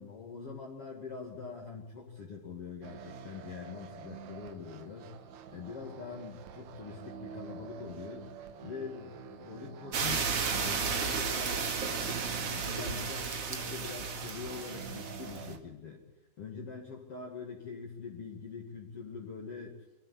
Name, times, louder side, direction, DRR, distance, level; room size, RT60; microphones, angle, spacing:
voice 1, 0.0-5.1 5.5-16.0 16.4-19.7, left 5 dB, 45° left, 0 dB, 2.7 m, -44 dB
sound 1, 2.8-15.6, right 6 dB, 60° right, 2.1 m, -47 dB
sound 2, 9.9-15.5, right 5 dB, 45° right, 2.6 m, -33 dB
24.5 x 14.5 x 9.9 m, 1.1 s
omnidirectional pair, 4.3 m